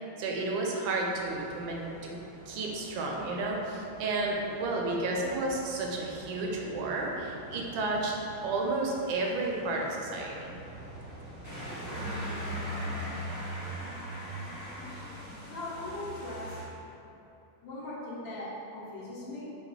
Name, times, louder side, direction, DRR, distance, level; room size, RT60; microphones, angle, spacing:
voice 1, 0.0-2.1 2.5-8.2 8.4-10.5, right 2 dB, 75° right, -1 dB, 1.2 m, -32 dB
sound 1, 1.1-16.6, equal, 15° right, 0.7 m, -42 dB
voice 2, 15.4-16.6 17.6-19.4, left 2 dB, 70° left, -7 dB, 1.7 m, -39 dB
4.8 x 2.3 x 4.6 m, 2.8 s
omnidirectional pair, 2.3 m